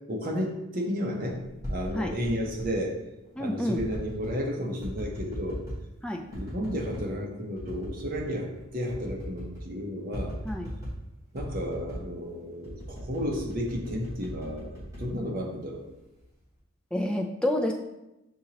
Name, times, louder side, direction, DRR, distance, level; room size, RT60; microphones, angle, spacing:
voice 1, 0.1-1.4 1.7-3.0 3.4-5.6 6.3-10.3 11.3-15.9, equal, 40° right, -1 dB, 0.8 m, -32 dB
sound 1, 1.4-2.7 3.7-4.4 4.8-5.9 6.3-7.1 7.6-8.3 8.6-8.7 8.9-9.7 10.1-11.0 11.4-12.1 12.6-15.7 16.2-16.6, equal, 15° right, 1.3 m, -38 dB
voice 2, 3.4-3.8 6.0-6.2 10.4-10.7 16.9-17.7, left 1 dB, 5° left, 1 dB, 0.3 m, -28 dB
6.3 x 2.8 x 2.8 m, 0.93 s
head